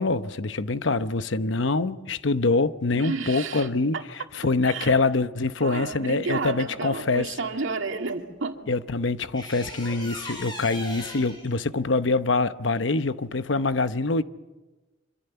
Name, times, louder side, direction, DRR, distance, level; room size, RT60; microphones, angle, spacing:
voice 1, 0.0-4.0 4.3-7.3 8.7-14.2, left 3 dB, 70° left, 0.9 m, -25 dB
voice 2, 3.0-3.7 3.9-4.0 4.6-5.0 5.6-8.6, right 4 dB, 90° right, 2.2 m, -31 dB
sound 1, 8.1-8.2 9.3-11.5, left 1 dB, 25° left, 6.8 m, -38 dB
26.0 x 25.5 x 7.0 m
head